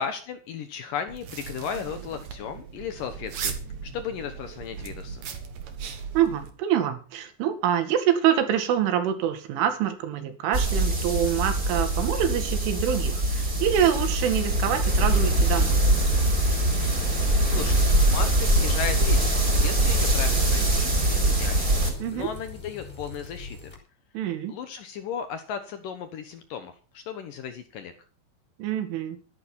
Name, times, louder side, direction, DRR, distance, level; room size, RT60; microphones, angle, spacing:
voice 1, 0.0-3.6 3.8-5.2 17.4-19.3 19.6-21.6 22.1-23.7 24.5-27.9, left 7 dB, 70° left, 9 dB, 2.1 m, -35 dB
sound 1, 1.1-6.5, right 6 dB, 55° right, 2.2 m, -37 dB
voice 2, 6.1-15.8 22.0-22.3 24.1-24.6 28.6-29.2, right 10 dB, 90° right, 8 dB, 4.5 m, -25 dB
sound 2, 10.5-21.9, right 1 dB, 20° right, 5.6 m, -23 dB
sound 3, 14.5-23.8, left 4 dB, 15° left, 3.9 m, -40 dB
14.0 x 11.5 x 5.6 m, 0.36 s
omnidirectional pair, 5.4 m